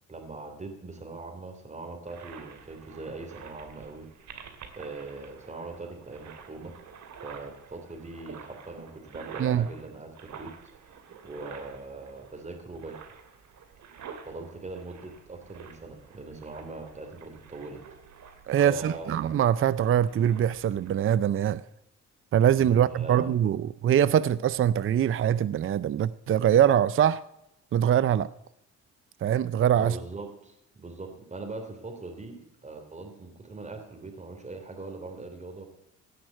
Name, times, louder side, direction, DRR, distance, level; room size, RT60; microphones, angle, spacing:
voice 1, 0.1-4.0 4.7-6.7 7.2-10.5 11.2-13.0 14.2-17.8 18.6-19.3 22.5-23.3 29.8-35.7, right 3 dB, 25° right, 3.1 m, -41 dB
sound 1, 2.0-20.9, right 6 dB, 70° right, 2.4 m, -49 dB
voice 2, 18.5-21.6 22.3-27.2 27.7-28.3 29.2-30.0, right 10 dB, 45° right, 0.5 m, -23 dB
17.0 x 6.0 x 9.1 m
cardioid pair, 90°, 30 cm